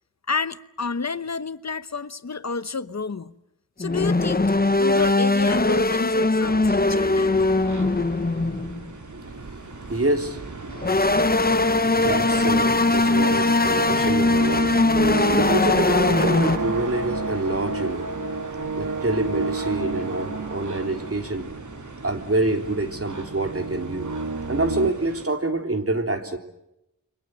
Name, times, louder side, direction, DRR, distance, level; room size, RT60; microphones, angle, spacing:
voice 1, 0.3-3.3 3.8-4.4 4.8-7.3, left 4 dB, 60° left, 1.0 m, -29 dB
sound 1, 3.8-8.9 10.7-16.6, left 2 dB, 30° left, 1.0 m, -20 dB
sound 2, 6.4-24.9, right 3 dB, 85° right, 2.3 m, -32 dB
sound 3, 7.3-25.3, right 3 dB, 70° right, 3.2 m, -40 dB
voice 2, 9.1-18.3 18.8-21.5 22.0-24.1 24.5-26.4, right 2 dB, 50° right, 3.6 m, -27 dB
29.0 x 24.5 x 7.6 m
wide cardioid pair, 70°, 31 cm